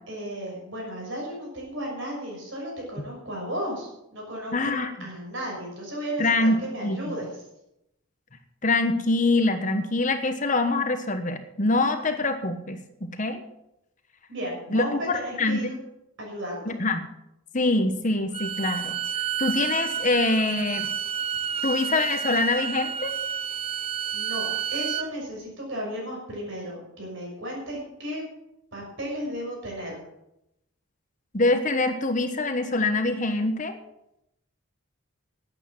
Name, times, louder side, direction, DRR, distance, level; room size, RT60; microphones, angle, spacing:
voice 1, 0.1-7.2 14.3-15.8 16.2-16.7 24.1-28.2 28.7-30.0, equal, 60° right, -1 dB, 6.3 m, -34 dB
voice 2, 4.5-4.9 6.2-7.0 8.6-13.4 14.7-15.7 16.7-17.1 17.5-18.9 19.4-20.9 21.6-23.1 31.3-33.8, left 2 dB, 35° left, 8 dB, 1.1 m, -24 dB
Bowed string instrument, 18.3-25.1, right 8 dB, 25° right, 0.4 m, -30 dB
12.0 x 9.1 x 7.4 m, 0.83 s
head